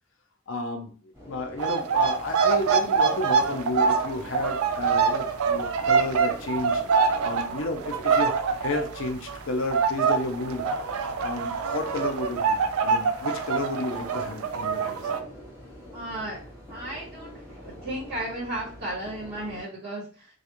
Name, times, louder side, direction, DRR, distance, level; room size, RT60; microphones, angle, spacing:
voice 1, 0.5-0.9 1.3-6.8 7.2-10.6 11.2-15.0, left 2 dB, 60° left, 4 dB, 0.5 m, -32 dB
sound 1, 1.1-19.6, equal, 10° right, 1.1 m, -45 dB
sound 2, 1.6-9.4 9.7-15.2, right 5 dB, 80° right, 0.3 m, -25 dB
voice 2, 15.9-16.4 16.7-20.0, right 1 dB, 45° right, -8 dB, 1.3 m, -34 dB
2.4 x 2.3 x 2.9 m, 0.39 s
head